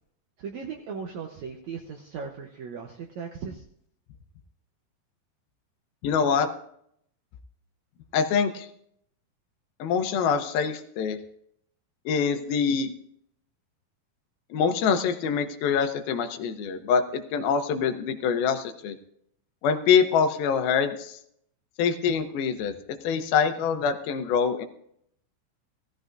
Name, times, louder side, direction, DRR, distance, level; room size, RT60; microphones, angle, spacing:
voice 1, 0.4-3.6, right 6 dB, 80° right, 2 dB, 1.6 m, -37 dB
voice 2, 6.0-6.5 8.1-8.7 9.8-11.2 12.1-13.0 14.5-19.0 19.6-21.2 21.8-24.7, left 6 dB, 80° left, 8 dB, 2.6 m, -25 dB
17.0 x 14.0 x 2.5 m, 0.70 s
omnidirectional pair, 4.3 m